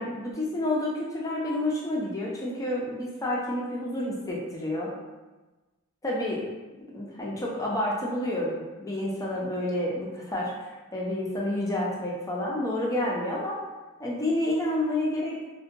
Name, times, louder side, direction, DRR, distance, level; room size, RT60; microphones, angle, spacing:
voice 1, 0.0-4.9 6.0-6.4 6.9-13.6 14.0-15.4, left 1 dB, 15° left, -4 dB, 0.4 m, -29 dB
2.7 x 2.2 x 2.6 m, 1.2 s
head